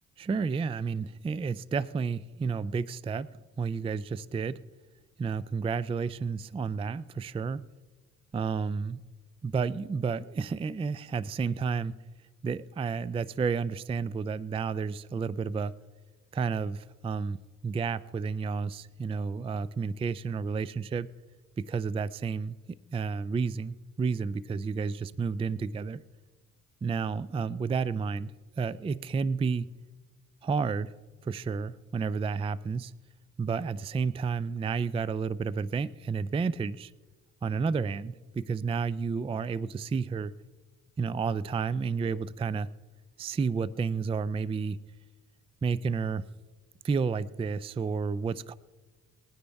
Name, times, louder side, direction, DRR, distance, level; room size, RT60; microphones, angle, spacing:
voice 1, 0.2-3.3 3.6-4.6 5.2-7.7 8.3-9.0 9.4-11.9 12.4-15.7 16.3-17.4 17.6-21.1 21.6-22.6 22.9-26.0 26.8-28.3 28.6-29.7 30.4-30.9 31.2-32.9 33.4-36.9 37.4-40.3 41.0-42.7 43.2-44.8 45.6-46.2 46.8-48.5, right 5 dB, 15° right, 18 dB, 0.3 m, -31 dB
20.5 x 9.7 x 3.5 m, 1.3 s
cardioid pair, 75°, 35 cm